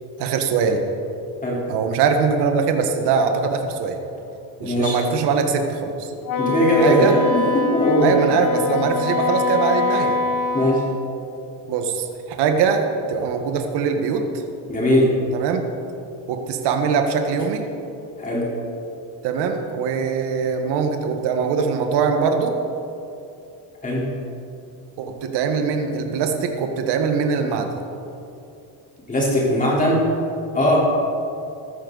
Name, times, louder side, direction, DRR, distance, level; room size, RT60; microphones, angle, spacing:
voice 1, 0.2-0.8 1.7-4.0 4.6-6.1 6.8-7.2 8.0-10.2 11.7-14.4 15.3-15.6 16.3-17.6 19.2-22.5 25.0-27.7 30.7-30.8, right 6 dB, 55° right, 5 dB, 1.5 m, -22 dB
voice 2, 4.6-5.0 6.4-8.1 10.5-10.8 14.7-15.1 18.2-18.5 23.8-24.1 29.1-30.0 30.5-30.8, equal, 15° left, -5 dB, 3.9 m, -19 dB
Wind instrument woodwind instrument, 6.2-10.8, left 4 dB, 40° left, 1.1 m, -23 dB
15.0 x 13.5 x 4.1 m, 2.7 s
cardioid pair, 145°, 47 cm